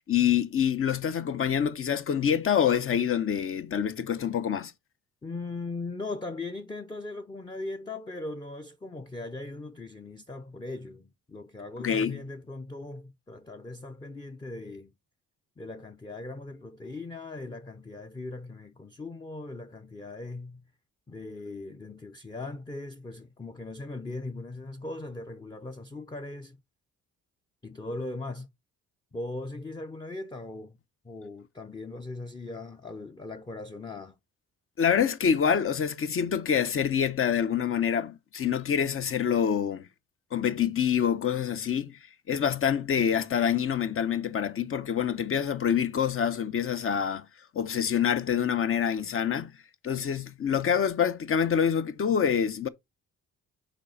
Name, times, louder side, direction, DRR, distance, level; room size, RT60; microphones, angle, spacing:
voice 1, 0.1-4.7 11.8-12.2 34.8-39.9 40.3-42.0 42.3-47.3 47.5-49.5 49.8-52.7, left 8 dB, 45° left, 0.8 m, -26 dB
voice 2, 5.2-14.9 15.6-20.7 21.1-26.6 27.6-28.5 29.1-30.8 31.0-34.2, left 2 dB, 15° left, 0.6 m, -39 dB
5.2 x 4.4 x 5.4 m
cardioid pair, 90°, 30 cm